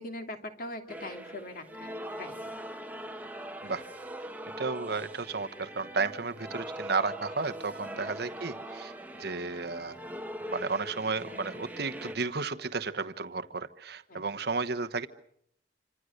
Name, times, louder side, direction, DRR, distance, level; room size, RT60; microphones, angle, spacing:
voice 1, 0.0-2.4 7.9-8.2 14.1-14.3, left 1 dB, 50° left, 5 dB, 2.9 m, -42 dB
sound 1, 0.9-12.2, equal, 10° right, 1.2 m, -41 dB
voice 2, 4.6-8.9 9.2-10.0 10.5-15.1, right 4 dB, 60° right, 9 dB, 1.2 m, -33 dB
27.0 x 26.0 x 6.6 m, 0.72 s
head